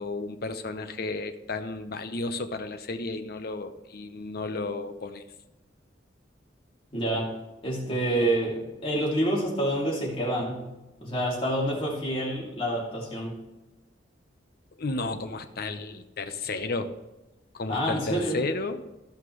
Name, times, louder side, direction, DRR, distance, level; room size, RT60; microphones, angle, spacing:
voice 1, 0.0-5.2 14.7-17.0 17.5-18.9, left 3 dB, 55° left, 9 dB, 0.8 m, -33 dB
voice 2, 6.9-7.3 7.6-10.7 11.0-13.4 17.7-18.4, right 1 dB, 30° left, -4 dB, 2.6 m, -27 dB
14.5 x 5.7 x 3.2 m, 1.0 s
head